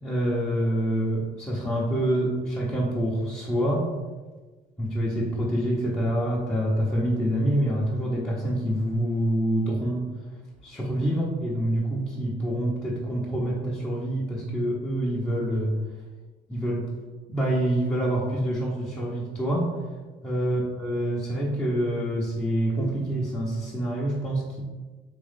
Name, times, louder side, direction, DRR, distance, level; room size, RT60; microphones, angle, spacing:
voice 1, 0.0-3.9 4.8-10.0 10.6-15.8 16.5-16.9 17.3-19.7 20.2-24.6, right 1 dB, 10° left, -7 dB, 0.8 m, -26 dB
3.7 x 3.1 x 3.6 m, 1.3 s
cardioid pair, 110°, 17 cm